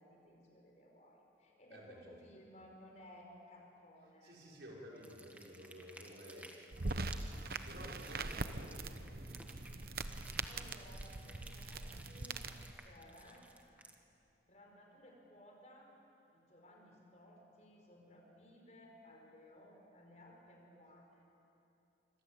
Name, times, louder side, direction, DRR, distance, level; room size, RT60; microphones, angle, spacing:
voice 1, 0.0-4.4 8.1-9.1 10.4-13.5 14.5-15.9 16.3-21.2, equal, 40° left, 1 dB, 4.6 m, -59 dB
voice 2, 1.7-2.2 4.2-7.0 7.3-9.2, equal, 75° right, -3 dB, 6.1 m, -54 dB
sound 1, 5.0-13.9, right 1 dB, 10° right, 1.7 m, -56 dB
sound 2, 6.7-12.7, right 3 dB, 55° right, 1.0 m, -42 dB
26.5 x 25.5 x 8.6 m, 2.9 s
head